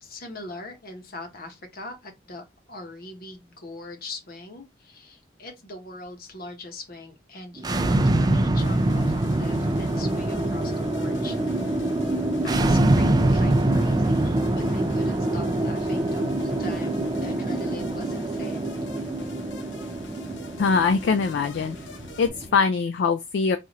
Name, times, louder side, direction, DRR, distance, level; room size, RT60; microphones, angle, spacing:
voice 1, 0.0-11.4 11.6-11.8 12.4-18.7, left 2 dB, 55° left, 1.0 m, -41 dB
sound 1, 7.6-22.5, right 1 dB, 20° right, 0.3 m, -24 dB
sound 2, 8.6-22.3, left 2 dB, 90° left, 0.8 m, -44 dB
voice 2, 20.6-21.8 22.2-23.6, left 5 dB, 70° left, 0.3 m, -22 dB
4.2 x 2.4 x 2.8 m
head